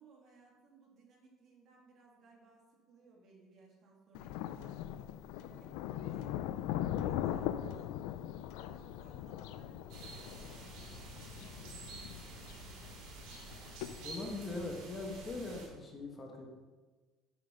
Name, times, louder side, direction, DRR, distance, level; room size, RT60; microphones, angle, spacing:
voice 1, 0.0-4.8 5.3-7.9 8.6-12.6, right 3 dB, 45° right, -2 dB, 2.5 m, -61 dB
Thunder, 4.1-14.1, left 11 dB, 85° left, 0.4 m, -40 dB
sound 1, 9.9-15.7, right 3 dB, 75° right, 2.9 m, -49 dB
voice 2, 14.0-16.5, left 2 dB, 25° left, 2 dB, 1.3 m, -41 dB
7.8 x 5.8 x 5.4 m, 1.3 s
cardioid pair, 140°, 0 cm